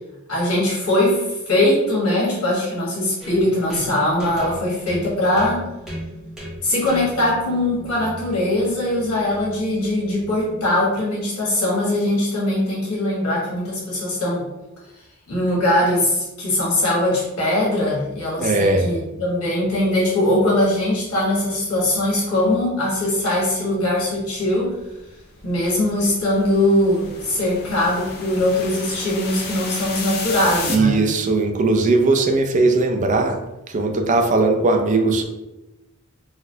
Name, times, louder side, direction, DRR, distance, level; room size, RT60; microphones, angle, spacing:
voice 1, 0.3-5.6 6.6-14.5 15.3-24.7 25.4-31.0, left 1 dB, 90° left, -5 dB, 1.4 m, -21 dB
sound 1, 3.2-11.0, equal, 5° right, 0.8 m, -37 dB
voice 2, 18.4-18.9 30.7-33.4 33.7-35.2, right 3 dB, 35° right, 3 dB, 0.4 m, -18 dB
sound 2, 24.8-30.8, left 4 dB, 50° left, 0.5 m, -33 dB
3.9 x 2.1 x 2.7 m, 0.98 s
head